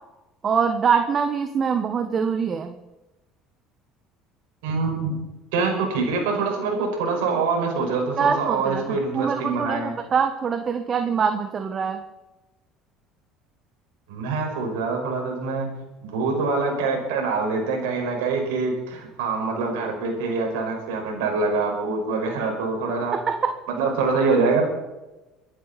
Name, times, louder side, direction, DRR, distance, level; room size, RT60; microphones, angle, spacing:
voice 1, 0.4-2.7 8.2-12.0 23.1-23.5, right 6 dB, 40° right, 7 dB, 1.4 m, -24 dB
voice 2, 4.6-5.2 5.5-9.9 14.1-15.7 16.0-23.2 23.7-24.6, right 4 dB, 80° right, 1 dB, 5.4 m, -25 dB
24.5 x 11.0 x 4.3 m, 1.0 s
hypercardioid pair, 75°, 0 cm